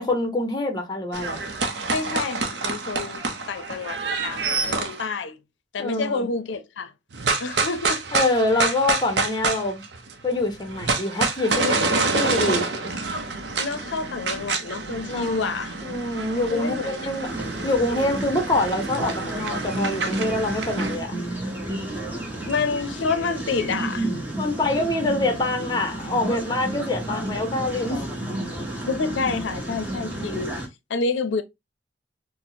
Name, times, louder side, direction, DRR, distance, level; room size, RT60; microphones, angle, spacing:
voice 1, 0.0-1.4 5.8-6.3 8.1-9.8 10.2-12.7 15.1-15.4 15.8-17.3 17.6-21.1 24.4-28.1, left 2 dB, 25° left, 0.7 m, -25 dB
sound 1, 1.1-5.0 7.1-10.1 10.4-21.0, right 3 dB, 65° right, 0.6 m, -27 dB
voice 2, 1.9-5.4 5.7-6.9 7.4-8.0 8.6-8.7 13.6-15.7 16.5-17.0 17.9-18.1 22.5-24.1 28.9-30.6 30.9-31.4, left 4 dB, 80° left, 0.5 m, -28 dB
sound 2, 17.2-30.7, right 1 dB, 10° right, 0.8 m, -31 dB
4.2 x 2.0 x 2.7 m
head